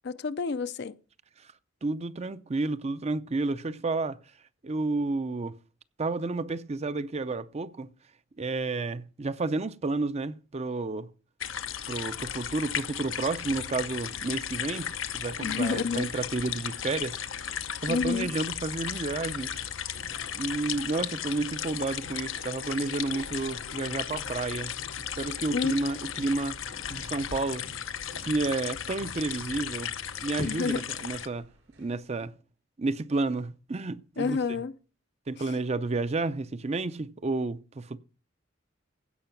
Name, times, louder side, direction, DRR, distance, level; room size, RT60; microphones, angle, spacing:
voice 1, 0.0-0.9 15.4-16.1 17.9-18.3 25.5-25.7 30.4-30.9 34.2-34.7, left 5 dB, 55° left, 0.5 m, -29 dB
voice 2, 1.8-4.2 4.6-5.5 6.0-7.9 8.4-11.1 11.9-14.9 15.1-17.2 17.8-19.6 20.3-24.7 25.2-26.6 26.9-27.6 28.2-29.9 30.2-31.5 31.8-32.3 32.8-34.4 35.3-38.0, right 3 dB, 35° right, 0.5 m, -31 dB
sound 1, 11.4-31.3, left 9 dB, 85° left, 0.8 m, -35 dB
sound 2, 13.8-32.0, right 1 dB, 75° right, 4.0 m, -52 dB
16.0 x 5.6 x 5.8 m
head